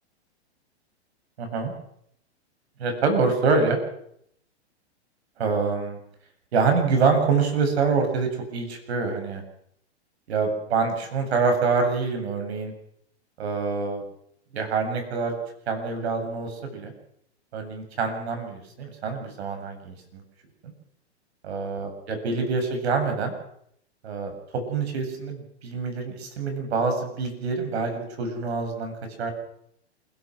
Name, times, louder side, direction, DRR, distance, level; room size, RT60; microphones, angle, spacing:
voice 1, 1.4-1.7 2.8-3.8 5.4-6.0 6.5-9.4 10.3-12.7 13.4-14.0 14.5-15.3 15.7-16.9 17.5-20.2 20.6-20.7 21.4-23.3 24.0-24.3 24.7-28.9 29.2-29.3, right 4 dB, 70° right, 6 dB, 7.8 m, -26 dB
28.0 x 17.0 x 6.3 m, 0.71 s
hypercardioid pair, 120°, 34 cm